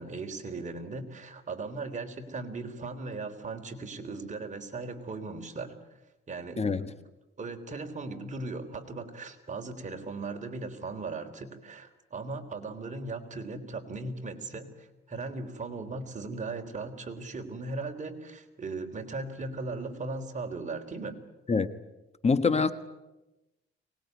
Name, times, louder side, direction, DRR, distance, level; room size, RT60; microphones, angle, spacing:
voice 1, 0.0-5.8 6.3-6.9 7.4-21.2, right 3 dB, 40° right, 3.8 m, -38 dB
voice 2, 22.2-22.7, left 4 dB, 30° left, 1.3 m, -24 dB
24.0 x 20.5 x 9.6 m
cardioid pair, 90°, 20 cm